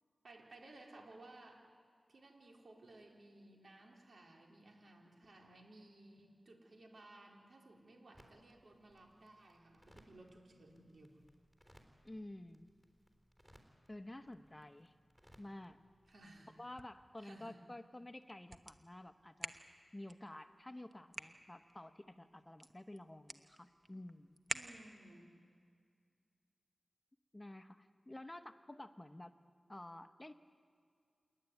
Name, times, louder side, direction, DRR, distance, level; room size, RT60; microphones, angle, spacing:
voice 1, 0.2-1.7 2.1-11.2 16.1-16.5 17.2-17.6 24.5-25.3, right 2 dB, 70° right, 0 dB, 3.6 m, -58 dB
sound 1, 8.1-16.8, equal, 10° right, 3.6 m, -68 dB
voice 2, 12.0-12.7 13.9-14.9 15.4-15.8 16.6-19.5 19.9-24.4 27.3-29.4 29.7-30.3, left 1 dB, 20° left, 9 dB, 1.0 m, -51 dB
sound 2, 16.5-25.2, right 2 dB, 30° right, 1.0 m, -51 dB
28.0 x 11.0 x 9.4 m, 2.2 s
wide cardioid pair, 65°, 0 cm